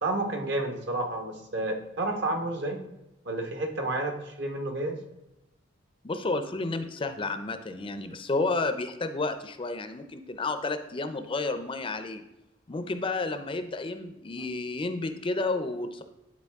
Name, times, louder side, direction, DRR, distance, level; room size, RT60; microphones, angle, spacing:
voice 1, 0.0-2.8 3.2-5.0, right 2 dB, 65° right, 4 dB, 1.2 m, -30 dB
voice 2, 6.0-12.2 12.7-16.0, left 3 dB, 30° left, 9 dB, 0.5 m, -31 dB
10.5 x 4.2 x 3.5 m, 0.94 s
head